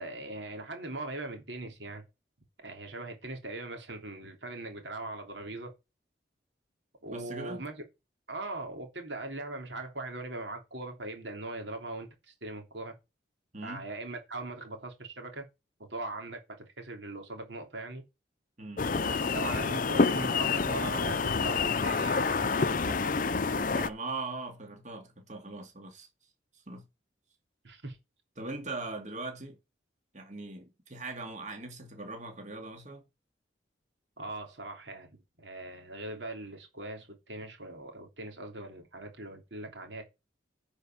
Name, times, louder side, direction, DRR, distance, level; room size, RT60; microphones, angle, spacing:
voice 1, 0.0-2.0 2.6-5.7 7.0-7.8 8.3-12.9 13.6-15.5 15.9-18.0 18.9-23.1 27.6-28.0 34.2-40.0, right 2 dB, 80° right, 3.1 m, -40 dB
voice 2, 7.1-7.6 13.5-13.9 18.6-18.9 23.5-26.1 26.7-26.8 28.4-29.6 30.1-33.1, right 3 dB, 40° right, 2.2 m, -40 dB
sound 1, 18.8-23.9, left 4 dB, 45° left, 0.6 m, -28 dB
10.0 x 5.2 x 6.0 m
head